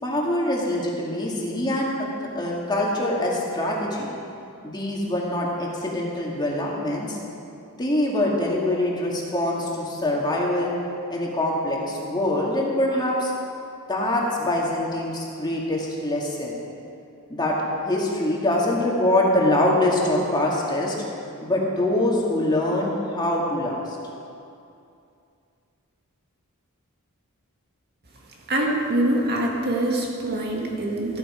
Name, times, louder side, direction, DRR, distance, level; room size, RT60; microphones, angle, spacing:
voice 1, 0.0-4.1 4.6-7.2 7.8-10.8 11.1-13.3 13.9-16.6 17.3-17.6 17.8-20.9 21.4-24.0, left 1 dB, 20° left, -3 dB, 2.2 m, -24 dB
voice 2, 28.5-31.2, right 1 dB, 45° right, -1 dB, 1.9 m, -24 dB
14.5 x 13.0 x 5.1 m, 2.5 s
head